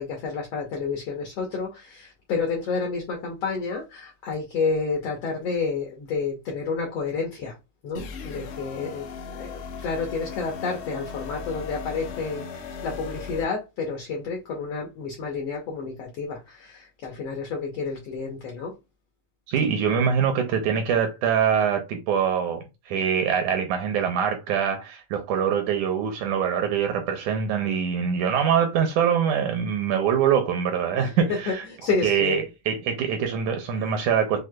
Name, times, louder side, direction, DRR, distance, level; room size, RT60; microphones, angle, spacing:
voice 1, 0.0-7.5 7.8-18.7 31.0-31.1 31.5-32.4 33.7-34.0, left 4 dB, 75° left, 1.5 m, -30 dB
sound 1, 7.9-13.4, left 5 dB, 90° left, 1.3 m, -37 dB
voice 2, 19.5-31.6 32.0-34.5, right 7 dB, 75° right, 1.9 m, -24 dB
6.2 x 2.1 x 2.2 m
omnidirectional pair, 3.8 m